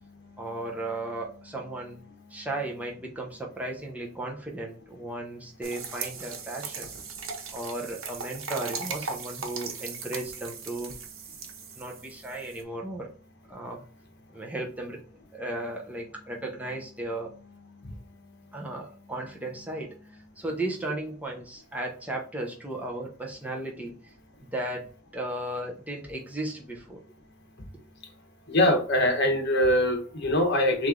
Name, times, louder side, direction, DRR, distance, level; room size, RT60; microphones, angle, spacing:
voice 1, 0.4-2.0 2.3-6.9 7.5-10.9 11.8-13.1 13.5-13.8 14.3-15.0 15.3-17.3 18.5-20.0 20.4-23.9 24.4-24.9 25.1-27.0, right 1 dB, 10° right, -1 dB, 0.8 m, -35 dB
sound 1, 5.6-12.6, right 5 dB, 90° right, 0.9 m, -38 dB
voice 2, 28.5-30.9, left 1 dB, 60° left, 3 dB, 1.2 m, -23 dB
3.5 x 3.3 x 3.7 m, 0.40 s
head